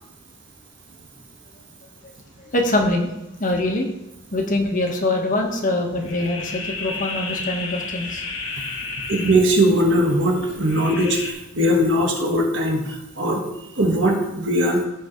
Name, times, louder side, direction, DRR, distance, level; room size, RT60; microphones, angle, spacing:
voice 1, 2.4-3.1 3.4-3.9 4.3-8.2, left 2 dB, 45° left, 1 dB, 1.5 m, -23 dB
sound 1, 6.0-11.3, left 4 dB, 85° left, 2.1 m, -32 dB
voice 2, 9.1-14.8, equal, 70° right, 1 dB, 1.8 m, -20 dB
15.0 x 5.6 x 3.3 m, 0.89 s
head